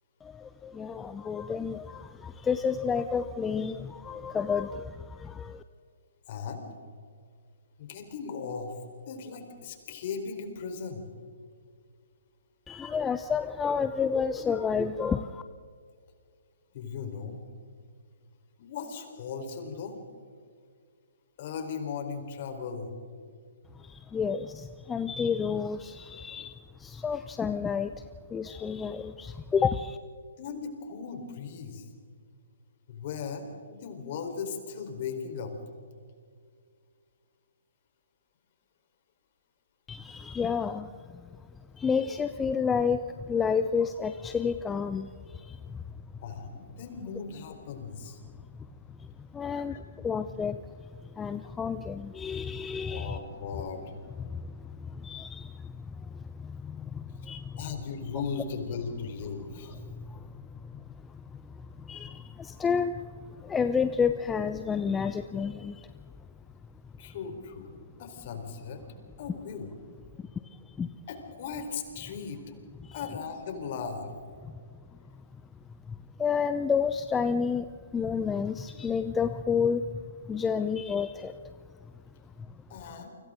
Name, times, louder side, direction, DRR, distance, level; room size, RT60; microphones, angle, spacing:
voice 1, 0.2-5.6 12.7-15.4 23.7-30.0 39.9-46.1 48.2-53.2 54.2-57.9 59.7-66.4 66.7-67.1 67.8-67.9 70.2-71.0 72.8-73.0 74.4-74.6 74.9-82.6, left 6 dB, 10° left, 10 dB, 0.7 m, -31 dB
voice 2, 6.3-6.7 7.8-8.8 9.1-11.1 16.7-17.4 18.6-20.0 21.4-22.9 30.4-31.9 32.9-35.5 46.2-48.2 49.7-49.8 52.9-53.8 57.6-59.8 67.0-67.7 68.0-68.8 69.2-69.7 71.1-72.4 72.9-74.1 82.7-83.1, left 5 dB, 45° left, 5 dB, 4.2 m, -37 dB
29.5 x 25.0 x 3.8 m, 2.1 s
figure-of-eight pair, 125°, 0 cm